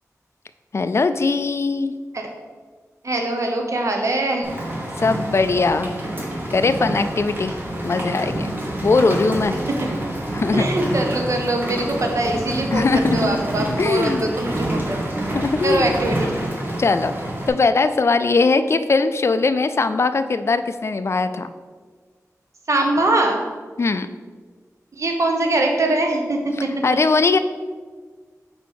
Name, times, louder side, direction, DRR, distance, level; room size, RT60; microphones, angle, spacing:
voice 1, 0.7-1.9 5.0-5.9 6.5-7.5 7.8-8.5 8.8-9.6 10.3-10.7 12.7-14.3 15.3-16.0 16.8-17.1 17.5-21.5 23.8-24.1 26.8-27.4, left 3 dB, 50° left, 11 dB, 0.3 m, -20 dB
voice 2, 3.0-4.5 9.5-9.6 10.5-15.2 15.6-16.3 22.7-23.4 25.0-26.7, right 2 dB, 60° right, 2 dB, 0.9 m, -22 dB
Rain, 4.4-17.5, right 1 dB, 35° right, 1.4 m, -27 dB
4.7 x 4.0 x 5.7 m, 1.5 s
wide cardioid pair, 90°, 6 cm